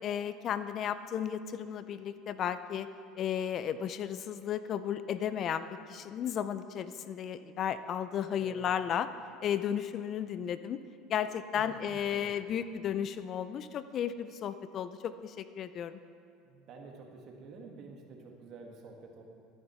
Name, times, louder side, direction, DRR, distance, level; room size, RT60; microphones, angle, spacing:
voice 1, 0.0-2.9 3.2-9.1 9.4-10.8 11.1-16.0, left 9 dB, 45° left, 13 dB, 0.5 m, -34 dB
voice 2, 11.6-12.3 16.4-19.2, right 3 dB, 50° right, 1 dB, 1.9 m, -50 dB
13.0 x 11.0 x 4.5 m, 2.4 s
supercardioid pair, 105°, 0 cm